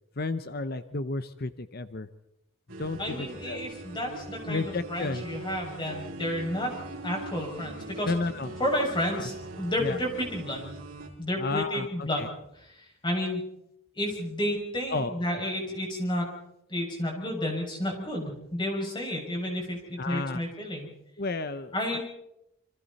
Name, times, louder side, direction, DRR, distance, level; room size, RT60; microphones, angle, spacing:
voice 1, 0.2-2.1 2.8-3.6 4.4-5.2 8.0-8.6 9.2-9.3 9.8-10.0 11.4-11.9 12.2-12.3 14.9-15.1 20.0-20.4 21.2-22.0, left 3 dB, 45° left, 11 dB, 0.9 m, -32 dB
sound 1, 2.7-11.1, right 2 dB, 65° right, 5.5 m, -41 dB
voice 2, 3.0-6.7 7.0-8.1 8.6-10.8 11.2-12.3 12.5-13.4 13.9-16.3 16.7-20.9 21.7-22.0, left 1 dB, 20° left, 0 dB, 6.5 m, -31 dB
28.5 x 25.5 x 4.2 m, 0.81 s
head